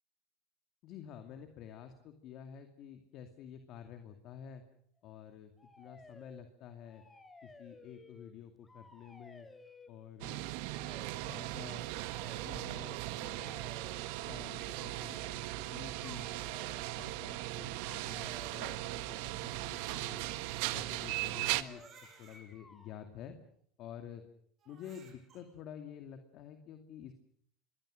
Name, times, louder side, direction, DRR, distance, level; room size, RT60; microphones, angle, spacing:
voice 1, 0.8-4.6 5.0-5.5 5.8-7.0 7.4-9.5 9.9-10.4 11.3-11.8 12.3-13.6 14.2-15.4 15.7-16.3 16.9-20.3 20.7-21.8 22.2-23.4 23.8-24.2 24.7-27.1, left 9 dB, 50° left, 7 dB, 2.4 m, -50 dB
sound 1, 5.6-6.5 6.8-8.3 8.6-9.9 10.6-11.1 12.0-12.6 13.3-14.1 14.6-15.3 15.9-16.8 17.7-18.9 19.7-20.2 21.1-22.0 22.3-23.0, left 3 dB, 15° left, 3.2 m, -56 dB
sound 2, 10.2-21.6, right 18 dB, 70° right, 1.3 m, -38 dB
Crying sobbing, 19.3-22.4 23.2-23.3 24.6-25.4, right 5 dB, 35° right, 7.0 m, -60 dB
26.5 x 22.5 x 6.5 m, 0.65 s
supercardioid pair, 125°, 0 cm